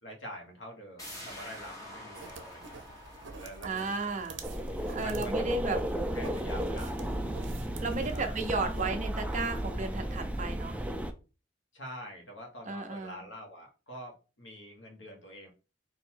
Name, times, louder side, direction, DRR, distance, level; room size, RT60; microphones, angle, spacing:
voice 1, 0.0-2.8 3.4-5.8 6.1-7.4 8.1-8.4 8.8-8.9 11.7-15.5, equal, 85° left, 2 dB, 1.5 m, -46 dB
sound 1, 1.0-6.5 6.8-6.9, left 1 dB, 20° left, 1.2 m, -49 dB
sound 2, 2.1-8.9, right 4 dB, 75° right, 0.7 m, -48 dB
voice 2, 3.6-4.4 4.9-5.8 7.8-10.8 12.7-13.2, right 3 dB, 40° right, 6 dB, 0.7 m, -34 dB
sound 3, 4.4-11.1, equal, 5° right, 0.4 m, -34 dB
3.9 x 2.7 x 4.5 m, 0.33 s
head